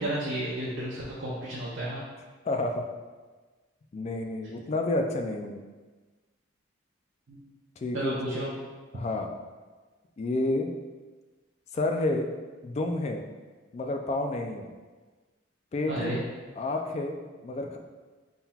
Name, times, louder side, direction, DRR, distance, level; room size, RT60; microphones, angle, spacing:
voice 1, 0.0-2.0 7.3-7.4 7.9-8.5 15.9-16.2, right 1 dB, 75° right, -8 dB, 0.7 m, -32 dB
voice 2, 2.4-2.8 3.9-5.6 7.8-8.4 8.9-9.3 10.2-10.7 11.7-12.3 12.6-13.2 13.7-14.7 15.7-16.2 16.6-17.8, left 2 dB, 35° left, 4 dB, 0.3 m, -30 dB
4.1 x 3.8 x 2.3 m, 1.3 s
head